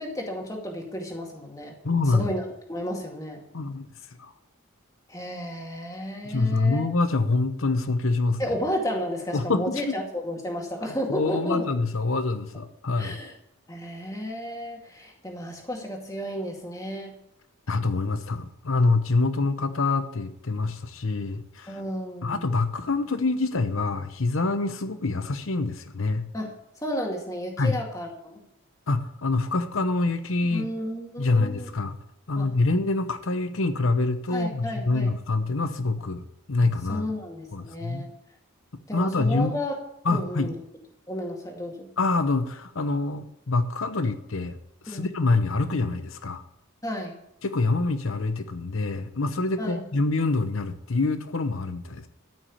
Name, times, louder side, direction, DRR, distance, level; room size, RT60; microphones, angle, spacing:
voice 1, 0.0-1.7 2.1-3.4 5.1-6.9 8.4-11.6 13.0-13.3 13.7-17.2 21.7-22.5 26.3-28.4 30.5-31.7 32.4-32.5 34.3-35.1 36.9-38.1 38.9-39.7 40.1-40.6 41.1-41.9 44.9-45.1 46.8-47.2 49.6-49.8, equal, 15° left, 1 dB, 2.2 m, -32 dB
voice 2, 1.8-2.3 3.5-3.9 4.2-4.3 6.2-8.4 9.3-9.9 11.1-13.2 17.7-21.8 22.2-26.3 27.6-27.8 28.9-30.7 31.2-32.0 32.3-37.1 37.5-38.0 38.9-39.5 40.0-40.5 42.0-44.6 44.8-46.4 47.4-52.1, left 3 dB, 75° left, 10 dB, 0.8 m, -26 dB
13.5 x 6.2 x 8.5 m, 0.80 s
head